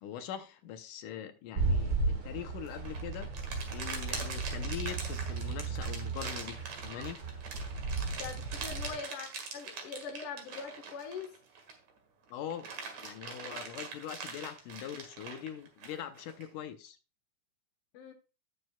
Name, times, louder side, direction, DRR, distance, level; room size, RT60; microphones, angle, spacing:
voice 1, 0.0-3.3 3.7-6.6 6.8-7.2 12.3-12.7 13.0-17.0, left 9 dB, 85° left, 8 dB, 2.4 m, -42 dB
sound 1, 1.5-9.0, right 3 dB, 40° right, 2.2 m, -35 dB
sound 2, 2.6-11.9 12.3-16.5, right 5 dB, 60° right, 2.9 m, -43 dB
voice 2, 8.1-11.3 17.9-18.1, left 5 dB, 55° left, 5 dB, 1.9 m, -42 dB
17.0 x 6.5 x 2.3 m, 0.32 s
omnidirectional pair, 3.6 m